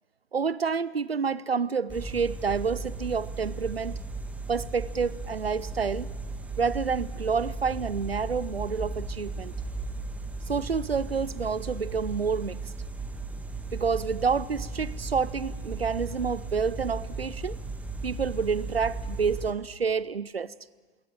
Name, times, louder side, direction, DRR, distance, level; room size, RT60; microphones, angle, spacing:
voice 1, 0.3-4.0 4.5-6.1 6.6-9.5 10.5-12.7 13.7-17.6 18.0-20.5, right 5 dB, 85° right, 20 dB, 0.6 m, -28 dB
sound 1, 1.9-19.5, right 3 dB, 5° right, 1.6 m, -36 dB
21.0 x 18.5 x 9.0 m, 1.3 s
figure-of-eight pair, 100°, 29 cm